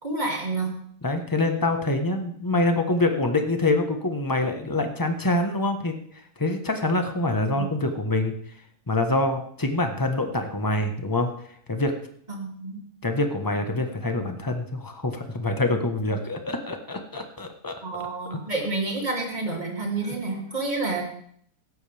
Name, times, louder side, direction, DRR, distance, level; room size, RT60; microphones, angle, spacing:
voice 1, 0.0-0.7 7.5-7.7 12.3-12.8 17.8-21.0, right 3 dB, 25° right, 0 dB, 3.2 m, -29 dB
voice 2, 1.0-5.9 6.4-8.3 8.9-11.3 11.7-11.9 13.0-17.7 18.3-18.4, left 2 dB, 15° left, 5 dB, 1.2 m, -25 dB
17.0 x 13.5 x 3.5 m, 0.63 s
omnidirectional pair, 1.7 m